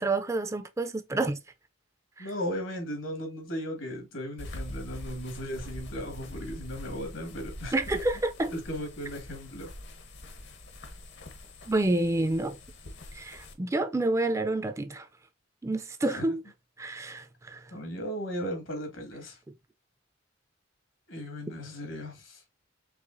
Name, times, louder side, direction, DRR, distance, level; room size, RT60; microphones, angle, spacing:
voice 1, 0.0-1.4 2.2-2.3 7.7-8.5 11.7-12.6 13.1-15.1 15.6-16.4 16.8-17.7, right 2 dB, 15° right, 0.4 m, -28 dB
voice 2, 2.2-7.7 8.5-9.7 16.1-16.3 17.7-19.4 21.1-22.4, equal, 80° left, 1.7 m, -36 dB
sound 1, 4.4-13.5, left 1 dB, 65° left, 0.9 m, -43 dB
4.7 x 3.2 x 2.5 m
head